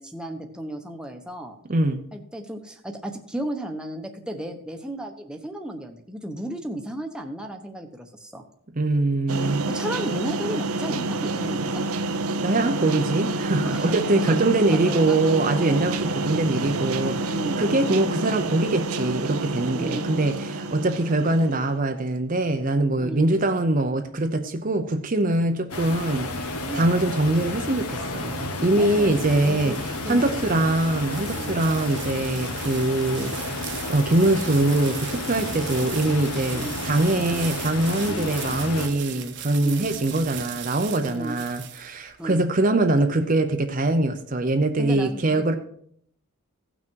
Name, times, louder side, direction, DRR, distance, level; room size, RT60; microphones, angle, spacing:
voice 1, 0.0-1.6 2.1-8.4 9.7-11.8 13.6-14.4 14.7-15.2 15.5-15.9 17.3-17.7 19.7-20.1 23.0-23.3 26.7-26.9 28.7-30.5 31.3-31.6 36.5-36.7 38.1-38.3 39.6-39.9 41.0-41.4 42.2-42.4 44.8-45.6, right 1 dB, 5° right, 3 dB, 0.9 m, -34 dB
voice 2, 1.7-2.0 8.7-9.7 12.4-45.6, right 2 dB, 35° right, 6 dB, 0.7 m, -23 dB
sound 1, 9.3-21.8, right 2 dB, 80° right, 0.8 m, -28 dB
sound 2, 25.7-38.9, left 2 dB, 90° left, 1.4 m, -32 dB
sound 3, 28.4-42.3, right 10 dB, 50° right, 1.1 m, -39 dB
16.0 x 6.1 x 4.6 m, 0.66 s
head